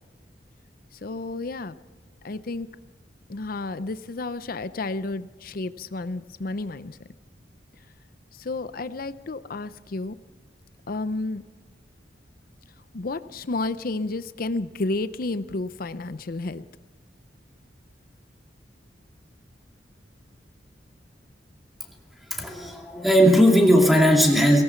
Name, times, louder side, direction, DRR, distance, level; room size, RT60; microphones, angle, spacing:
voice 1, 1.0-1.7 2.2-2.7 3.3-7.0 8.3-10.2 10.9-11.4 12.9-16.6, left 2 dB, 55° left, 14 dB, 0.6 m, -31 dB
voice 2, 22.3-24.6, equal, ahead, 0 dB, 2.4 m, -17 dB
18.0 x 17.0 x 4.5 m, 1.3 s
head